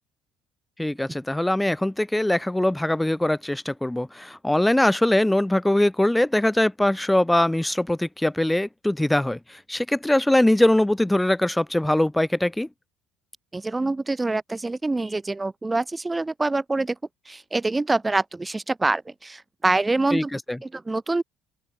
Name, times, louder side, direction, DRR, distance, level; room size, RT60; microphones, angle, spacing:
voice 1, 0.8-12.7 20.1-20.6, left 1 dB, 5° left, 2.7 m, -22 dB
voice 2, 13.5-17.0 17.2-20.3 20.6-21.2, right 2 dB, 15° right, 6.8 m, -25 dB
open air
figure-of-eight pair, 55°, 0 cm